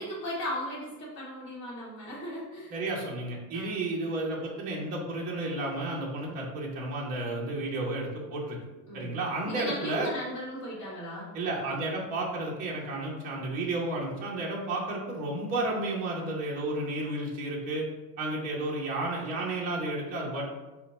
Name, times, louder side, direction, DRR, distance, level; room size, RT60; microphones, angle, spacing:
voice 1, 0.0-2.7 3.5-3.8 6.2-6.4 8.9-9.1 9.4-11.3, equal, 30° left, -9 dB, 1.1 m, -37 dB
voice 2, 2.7-8.6 8.9-10.1 11.3-17.8 18.2-20.4, right 2 dB, 20° right, -4 dB, 0.5 m, -32 dB
4.2 x 2.1 x 4.0 m, 1.1 s
cardioid pair, 180°, 41 cm